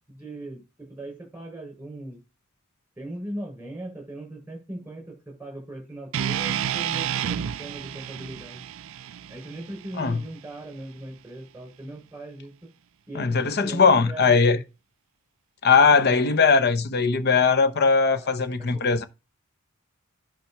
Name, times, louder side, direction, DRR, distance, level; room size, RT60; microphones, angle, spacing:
voice 1, 0.1-2.2 3.0-8.6 9.3-12.7 13.1-14.6 18.2-18.3 18.6-18.8, right 1 dB, 10° right, 6.6 m, -39 dB
sound 1, 6.1-10.3, right 9 dB, 65° right, 0.4 m, -30 dB
voice 2, 13.1-14.6 15.6-19.1, left 5 dB, 50° left, 0.9 m, -20 dB
10.5 x 5.1 x 4.5 m
head